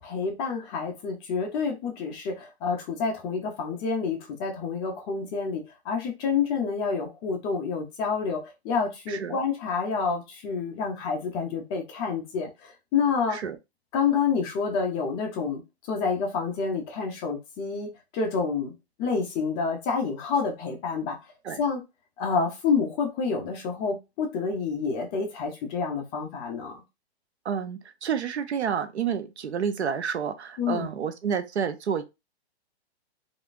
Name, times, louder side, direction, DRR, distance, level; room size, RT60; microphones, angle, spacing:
voice 1, 0.0-8.4 8.6-13.4 13.9-15.6 15.9-18.7 19.0-21.2 21.6-21.8 22.2-26.7 30.6-30.9, left 5 dB, 15° left, 0.4 m, -28 dB
voice 2, 27.5-32.0, right 7 dB, 85° right, 0.7 m, -29 dB
3.6 x 2.5 x 2.4 m
hypercardioid pair, 140°, 32 cm